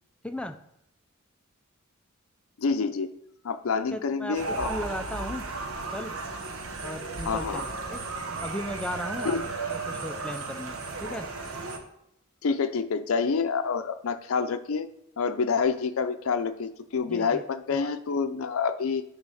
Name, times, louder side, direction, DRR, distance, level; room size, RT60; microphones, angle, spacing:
voice 1, 0.2-0.6 3.8-5.5 5.9-6.2 6.8-8.0 8.4-11.3 17.1-17.4 17.7-17.9, left 1 dB, 5° left, 8 dB, 0.4 m, -36 dB
voice 2, 2.6-3.1 3.4-4.7 7.3-7.6 9.2-9.4 12.4-14.9 15.2-19.0, left 5 dB, 75° left, 9 dB, 0.5 m, -27 dB
sound 1, 4.3-11.8, right 3 dB, 80° right, 1.0 m, -35 dB
9.7 x 3.5 x 5.5 m, 0.80 s
head